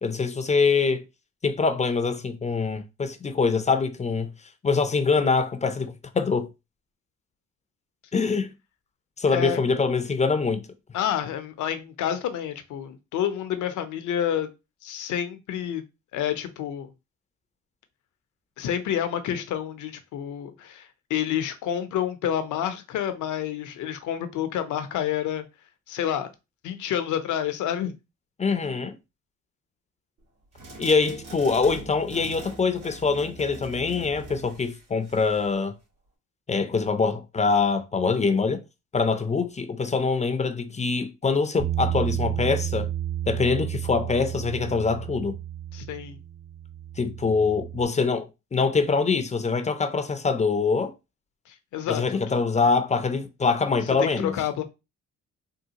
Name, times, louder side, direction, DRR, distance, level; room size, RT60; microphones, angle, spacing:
voice 1, 0.0-1.0 1.4-4.3 4.6-6.5 8.1-8.5 9.2-10.6 28.4-28.9 30.8-35.7 36.5-38.6 38.9-42.9 43.3-45.4 47.0-48.3 48.5-50.9 51.9-54.4, left 4 dB, 25° left, 0.5 m, -24 dB
voice 2, 10.9-14.5 14.8-15.8 16.1-16.9 18.6-25.5 25.9-26.3 26.6-27.9 45.7-46.2 51.5-52.0 53.9-54.6, left 10 dB, 75° left, 0.7 m, -29 dB
sound 1, 30.5-35.6, right 2 dB, 70° right, 1.8 m, -42 dB
Bass guitar, 41.6-47.8, right 11 dB, 25° right, 0.8 m, -31 dB
3.6 x 2.4 x 2.8 m
cardioid pair, 90°, 30 cm